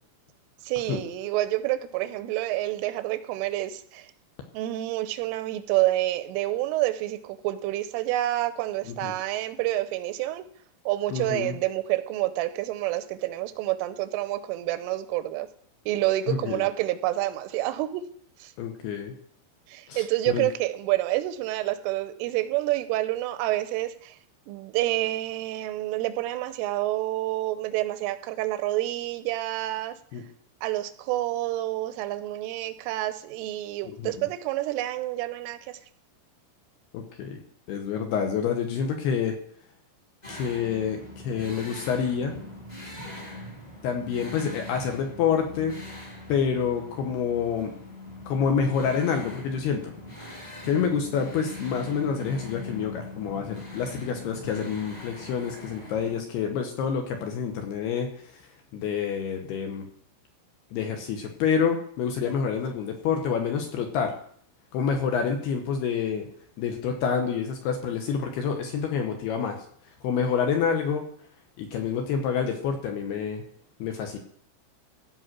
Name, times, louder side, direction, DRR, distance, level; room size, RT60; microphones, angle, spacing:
voice 1, 0.6-4.1 4.5-10.5 10.9-15.5 15.9-18.0 18.4-18.5 19.7-24.2 24.5-30.0 30.6-35.8, right 15 dB, 90° right, 12 dB, 3.2 m, -28 dB
voice 2, 11.1-11.6 16.3-16.7 18.6-19.1 19.9-20.5 30.1-30.2 33.8-34.3 36.9-37.4 37.7-39.4 40.3-42.4 43.8-45.8 46.3-47.7 48.3-49.9 50.3-50.4 50.6-58.1 58.7-59.8 60.7-64.1 64.7-66.3 66.6-69.6 70.0-71.1 71.6-73.4 73.8-74.2, left 6 dB, 75° left, 4 dB, 2.6 m, -28 dB
sound 1, 40.2-56.2, left 2 dB, 20° left, 1.1 m, -41 dB
15.5 x 5.4 x 6.0 m, 0.62 s
omnidirectional pair, 5.7 m